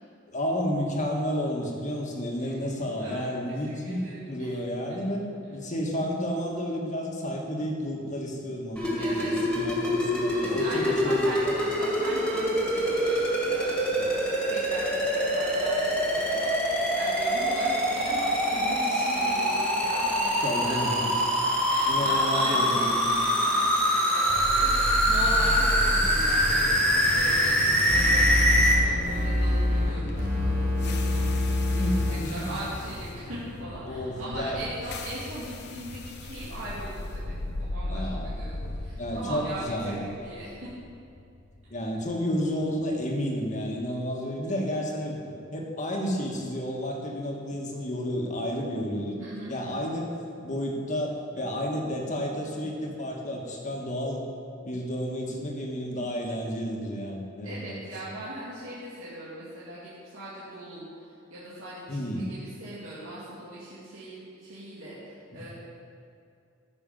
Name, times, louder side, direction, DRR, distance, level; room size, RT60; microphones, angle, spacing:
voice 1, 0.3-11.6 13.9-14.0 20.4-21.1 21.9-23.2 31.8-32.4 33.8-34.6 37.9-38.3 39.0-40.0 41.7-49.2 49.5-50.1 50.4-54.3 54.6-57.8 61.9-62.2 65.3-65.5, equal, 40° left, 0 dB, 1.6 m, -31 dB
voice 2, 3.0-4.6 9.0-9.4 10.4-21.1 21.7-40.7 49.2-49.6 57.4-65.5, right 1 dB, 85° right, -10 dB, 2.3 m, -39 dB
sound 1, 8.8-28.7, equal, 5° left, 2.2 m, -25 dB
sound 2, 24.3-42.4, left 2 dB, 55° left, 0.8 m, -35 dB
sound 3, 27.9-29.9 30.1-32.1, left 1 dB, 35° right, 2.4 m, -25 dB
14.0 x 6.3 x 5.4 m, 2.5 s
head